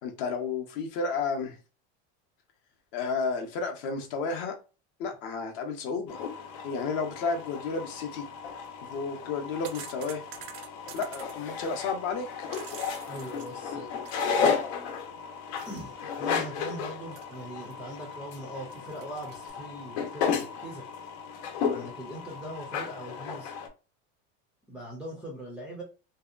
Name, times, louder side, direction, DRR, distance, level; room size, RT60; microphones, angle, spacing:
voice 1, 0.0-1.6 2.9-4.5 5.0-6.3 6.6-8.3 8.8-10.2 10.9-12.5, left 4 dB, 45° left, 0.6 m, -32 dB
sound 1, 6.1-23.7, left 6 dB, 80° left, 0.7 m, -34 dB
sound 2, 8.5-8.7 9.3-11.3 12.2-14.3 14.7-14.8 15.6-15.8 16.1-16.2 17.1-17.7 18.1-18.2 18.7-19.5, right 10 dB, 65° right, 0.5 m, -47 dB
voice 2, 13.1-13.9 15.6-20.8 21.6-23.5 24.7-25.8, right 1 dB, 5° right, 0.4 m, -41 dB
2.7 x 2.1 x 2.4 m
cardioid pair, 170°, 33 cm